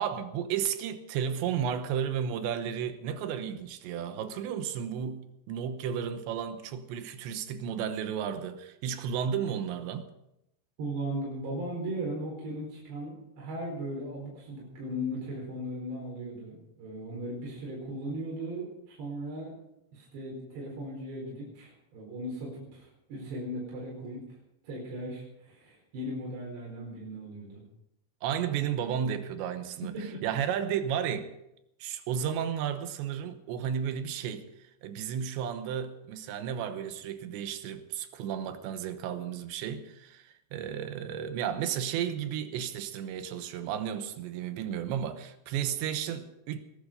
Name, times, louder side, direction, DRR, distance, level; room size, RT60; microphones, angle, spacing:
voice 1, 0.0-10.1 28.2-29.9 30.2-31.3 31.8-34.5 34.8-46.6, right 8 dB, 85° right, 3.3 m, -33 dB
voice 2, 10.8-19.5 19.9-24.2 24.6-27.6 29.9-30.2, right 1 dB, 70° right, 6.7 m, -37 dB
20.5 x 11.5 x 5.2 m
omnidirectional pair, 5.1 m